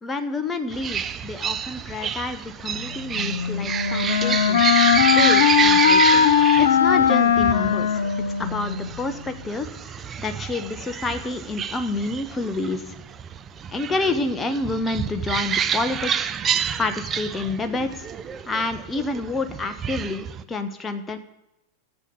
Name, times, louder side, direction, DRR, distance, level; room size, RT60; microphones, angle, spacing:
voice 1, 0.0-4.6 5.1-6.3 6.6-8.0 8.4-12.9 13.7-16.3 16.8-18.1 18.5-21.2, left 3 dB, 15° left, 7 dB, 1.2 m, -29 dB
sound 1, 0.7-20.4, right 8 dB, 25° right, 0.6 m, -28 dB
Wind instrument woodwind instrument, 3.1-9.0, left 7 dB, 60° left, 0.7 m, -19 dB
13.0 x 7.7 x 7.1 m, 0.93 s
figure-of-eight pair, 90°, 0 cm